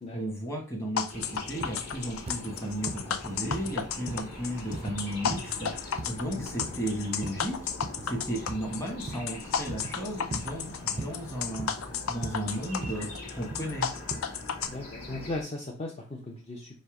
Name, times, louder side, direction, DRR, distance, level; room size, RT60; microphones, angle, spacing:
voice 1, 0.1-7.6 8.0-11.7 12.1-13.1 13.3-13.9, right 1 dB, 15° left, 0 dB, 1.2 m, -34 dB
sound 1, 1.0-14.7, left 7 dB, 75° left, 0.5 m, -33 dB
sound 2, 1.1-15.4, left 2 dB, 45° left, 1.9 m, -43 dB
sound 3, 1.6-1.8 2.3-2.4 2.9-3.1 3.5-3.7 4.1-4.3 4.7-5.0 5.3-5.6 6.0-6.2 6.6-6.8 7.2-7.4 7.8-8.1 8.5-8.7 9.1-9.3 9.7-10.0 10.3-10.5 11.0-11.2 11.6-11.8 12.2-12.5 12.8-13.0 13.5-13.7 14.1-14.2, right 2 dB, 30° right, 0.4 m, -38 dB
voice 2, 14.6-16.8, left 2 dB, 30° left, -1 dB, 0.6 m, -37 dB
5.3 x 2.1 x 4.8 m, 0.34 s
head